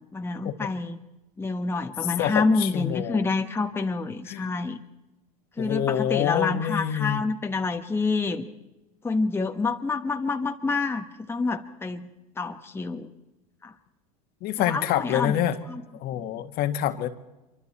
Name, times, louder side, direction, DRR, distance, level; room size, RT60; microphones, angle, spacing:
voice 1, 0.1-1.0 1.4-4.8 5.6-8.5 9.0-12.1 12.4-13.1 13.6-13.7 14.6-15.4 15.7-15.8 16.2-16.4, left 3 dB, 10° left, 5 dB, 1.2 m, -27 dB
voice 2, 2.2-3.2 4.3-4.5 5.6-7.2 14.4-15.6 16.0-17.1, left 11 dB, 50° left, 8 dB, 1.7 m, -26 dB
26.0 x 24.0 x 4.3 m, 1.0 s
supercardioid pair, 105°, 20 cm